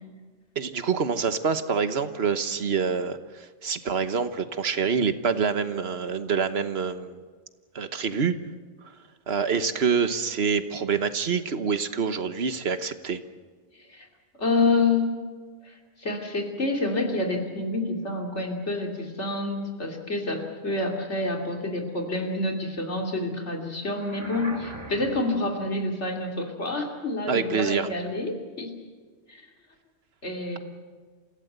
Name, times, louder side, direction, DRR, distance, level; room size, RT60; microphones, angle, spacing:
voice 1, 0.5-7.2 7.7-8.3 8.8-8.9 9.3-13.2 27.3-27.9, right 6 dB, 65° right, 10 dB, 1.4 m, -26 dB
voice 2, 14.4-15.1 15.7-28.7 29.3-29.4 30.2-30.6, left 2 dB, 85° left, 2 dB, 3.4 m, -28 dB
sound 1, 23.8-25.4, right 1 dB, 25° right, 2.2 m, -40 dB
28.0 x 16.5 x 8.1 m, 1.5 s
omnidirectional pair, 1.1 m